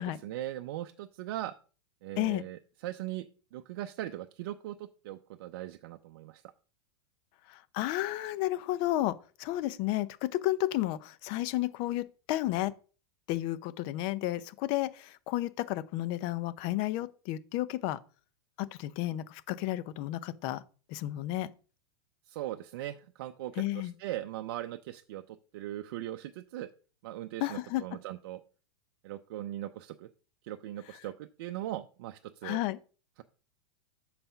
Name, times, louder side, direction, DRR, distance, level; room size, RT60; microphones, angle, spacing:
voice 1, 0.0-1.6 2.0-3.3 3.5-6.4 22.3-26.7 27.0-28.4 29.0-30.1 30.4-32.6, right 14 dB, 55° right, 0.6 m, -39 dB
voice 2, 7.5-12.7 13.3-18.0 18.6-20.6 20.9-21.5 23.6-23.9 27.4-27.8 32.4-32.8, left 15 dB, 35° left, 0.5 m, -32 dB
7.8 x 4.1 x 5.6 m
supercardioid pair, 160°, 14 cm